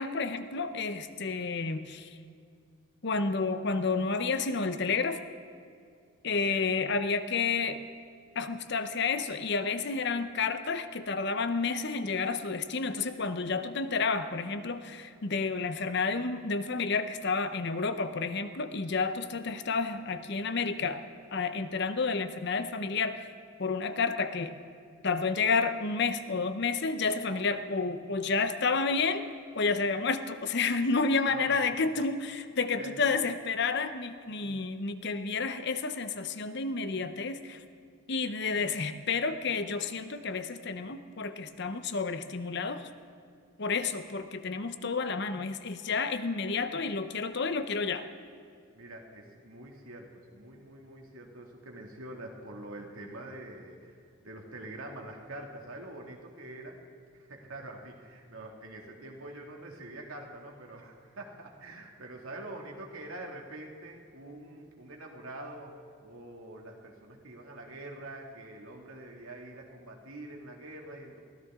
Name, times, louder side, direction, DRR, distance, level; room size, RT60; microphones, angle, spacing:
voice 1, 0.0-2.1 3.0-5.2 6.2-7.8 8.4-21.0 21.3-23.3 23.6-24.5 25.0-29.3 29.5-37.6 38.1-42.9 43.6-48.0, left 4 dB, 55° left, 10 dB, 0.8 m, -30 dB
voice 2, 6.3-6.7 31.3-31.6 32.7-33.0 48.7-56.8 57.1-65.7 66.0-71.2, right 1 dB, 80° right, 1 dB, 2.2 m, -45 dB
23.5 x 16.0 x 3.7 m, 2.3 s
head